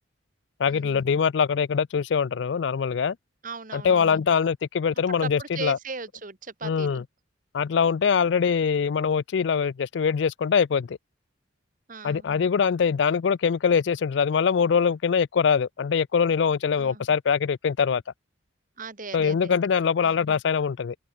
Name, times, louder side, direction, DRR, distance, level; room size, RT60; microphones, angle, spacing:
voice 1, 0.6-3.2 3.7-5.8 6.6-7.0 7.5-11.0 12.0-18.0 19.1-21.0, left 6 dB, 60° left, 0.4 m, -23 dB
voice 2, 3.4-4.2 4.9-7.0 11.9-12.3 16.8-17.0 18.8-19.5 20.0-20.2, right 4 dB, 40° right, 1.5 m, -38 dB
open air
head